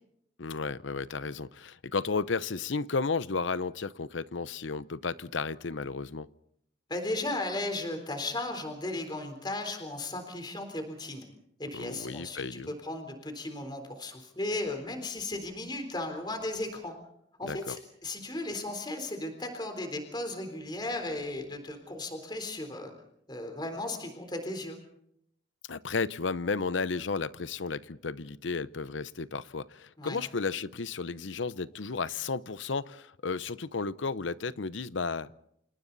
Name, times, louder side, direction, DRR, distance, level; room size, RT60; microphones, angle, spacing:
voice 1, 0.4-6.3 11.7-12.7 17.4-17.8 25.7-35.3, left 4 dB, 90° left, 0.8 m, -33 dB
voice 2, 6.9-11.3 11.6-16.9 17.4-22.9 23.3-24.8 30.0-30.2, left 2 dB, 25° left, 3.8 m, -36 dB
29.0 x 28.0 x 4.1 m
head